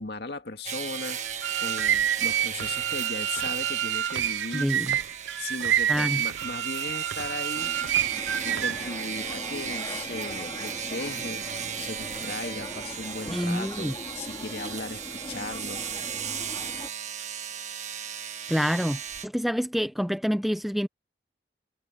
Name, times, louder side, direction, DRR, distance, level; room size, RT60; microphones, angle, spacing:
voice 1, 0.0-4.7 5.4-7.7 8.4-11.5 11.8-15.8, left 2 dB, 65° left, 2.1 m, -37 dB
sound 1, 0.7-19.3, right 8 dB, 40° right, 1.5 m, -36 dB
sound 2, 1.3-8.9, right 10 dB, 85° right, 0.4 m, -28 dB
voice 2, 4.5-5.0 5.9-6.2 13.3-13.9 18.5-20.9, equal, ahead, 0.5 m, -27 dB
sound 3, 7.6-16.9, left 1 dB, 25° left, 2.1 m, -41 dB
head